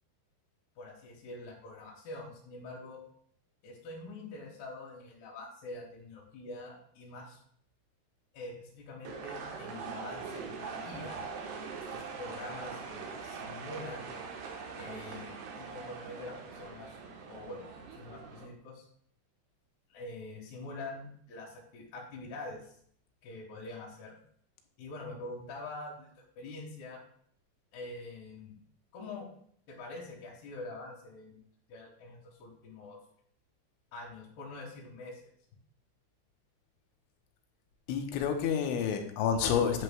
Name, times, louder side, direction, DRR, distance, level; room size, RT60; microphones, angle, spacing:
voice 1, 0.8-3.0 3.6-7.4 8.3-11.2 11.8-14.1 14.7-17.0 17.3-17.7 17.9-18.8 19.9-22.7 23.2-24.2 24.8-26.1 26.4-27.0 27.7-28.6 28.9-29.3 29.7-31.4 31.7-33.0 33.9-35.2, left 2 dB, 65° left, -4 dB, 3.2 m, -45 dB
sound 1, 9.1-18.5, right 5 dB, 70° right, 2.9 m, -42 dB
voice 2, 37.9-39.8, left 7 dB, 90° left, 4 dB, 3.4 m, -29 dB
11.0 x 9.5 x 2.3 m, 0.63 s
omnidirectional pair, 5.4 m